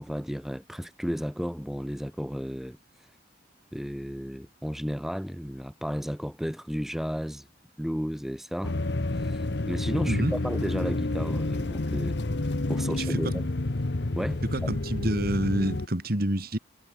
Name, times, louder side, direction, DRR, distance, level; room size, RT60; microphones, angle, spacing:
voice 1, 0.0-2.8 3.7-7.5 7.8-8.8 9.1-12.2 12.7-13.5 14.1-14.7, equal, ahead, 1.2 m, -33 dB
sound 1, 8.6-15.9, left 2 dB, 60° left, 1.0 m, -29 dB
voice 2, 13.0-13.3 14.5-16.6, right 1 dB, 50° right, 2.2 m, -28 dB
head